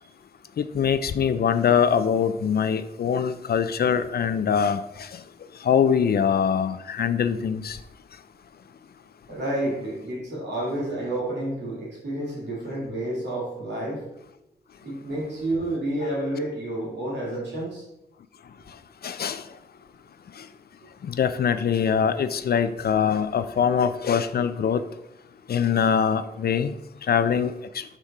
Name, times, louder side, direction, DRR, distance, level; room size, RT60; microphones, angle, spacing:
voice 1, 0.6-5.1 5.6-7.8 19.0-19.4 21.0-24.8 25.5-26.7 27.1-27.8, left 7 dB, 65° left, 0.4 m, -23 dB
voice 2, 9.3-14.0 14.8-17.8, right 1 dB, 85° right, 2.5 m, -30 dB
6.2 x 5.1 x 4.2 m
cardioid pair, 75°, 17 cm